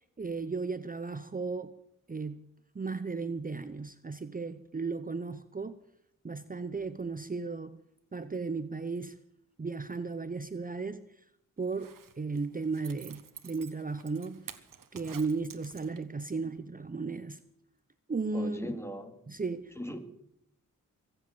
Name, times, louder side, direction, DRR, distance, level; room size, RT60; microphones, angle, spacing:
voice 1, 0.2-1.7 2.1-2.4 2.7-5.8 6.2-7.8 8.1-9.2 9.6-11.2 11.6-14.5 14.9-17.4 18.1-18.7 19.3-19.8, right 4 dB, 25° right, 12 dB, 0.7 m, -35 dB
Zipper (clothing), 11.6-16.2 16.6-16.7, right 7 dB, 75° right, 1.5 m, -50 dB
voice 2, 18.3-19.1 19.8-20.0, equal, 10° left, 6 dB, 2.5 m, -38 dB
23.5 x 8.0 x 7.4 m, 0.76 s
wide cardioid pair, 80°, 33 cm